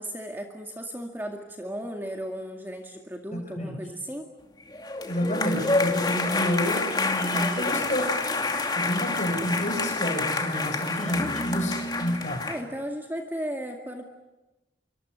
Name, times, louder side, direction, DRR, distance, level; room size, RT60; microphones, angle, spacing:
voice 1, 0.0-4.3 7.3-7.9 11.1-11.3 12.5-14.1, equal, 10° right, 3 dB, 2.1 m, -35 dB
sound 1, 4.7-12.6, left 3 dB, 20° left, 2.6 m, -28 dB
voice 2, 5.1-8.0 8.8-12.4, equal, 40° left, 4 dB, 7.1 m, -29 dB
26.5 x 25.0 x 8.2 m, 1.0 s
head